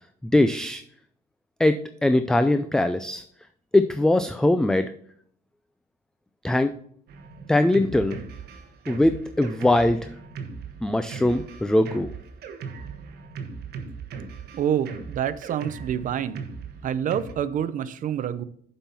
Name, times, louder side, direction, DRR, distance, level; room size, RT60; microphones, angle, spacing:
voice 1, 0.3-0.8 1.6-3.2 3.7-4.9 6.4-6.7 7.5-8.2 8.9-10.1 10.8-12.1, left 1 dB, 5° left, 9 dB, 0.3 m, -21 dB
Drum kit, 7.1-17.3, right 5 dB, 60° right, 1.2 m, -38 dB
voice 2, 14.5-16.4 16.8-18.4, right 9 dB, 45° right, 14 dB, 0.6 m, -27 dB
7.2 x 5.5 x 5.6 m, 0.62 s
cardioid pair, 130°, 18 cm